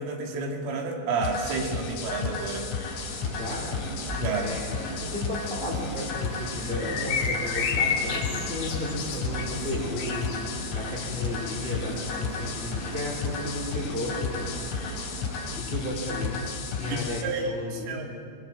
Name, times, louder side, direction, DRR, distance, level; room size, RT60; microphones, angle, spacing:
voice 1, 0.0-2.7 4.2-4.5 16.9-18.1, right 4 dB, 80° right, 1 dB, 5.0 m, -30 dB
sound 1, 1.2-17.2, left 5 dB, 85° left, 5.9 m, -33 dB
sound 2, 2.9-15.6, right 2 dB, 65° right, 6.2 m, -39 dB
voice 2, 3.2-3.7 3.9-4.7 5.0-14.9 15.5-16.5 16.8-18.1, left 1 dB, 10° left, -2 dB, 4.5 m, -34 dB
sound 3, 6.8-10.4, left 6 dB, 65° left, 4.2 m, -31 dB
24.0 x 21.5 x 7.7 m, 2.4 s
omnidirectional pair, 5.7 m